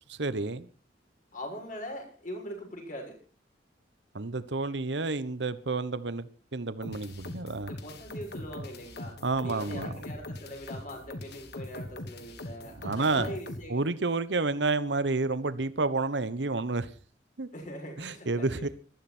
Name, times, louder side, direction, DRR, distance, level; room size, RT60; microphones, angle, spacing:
voice 1, 0.1-0.7 4.1-7.7 9.2-10.0 12.8-13.3 13.7-16.9 17.4-17.5 18.0-18.7, right 3 dB, 70° right, 1.1 m, -30 dB
voice 2, 1.3-3.2 7.7-13.8 17.5-18.7, equal, 45° left, 7.0 m, -41 dB
sound 1, 6.8-13.7, left 1 dB, 60° left, 1.7 m, -41 dB
20.0 x 13.5 x 4.4 m
head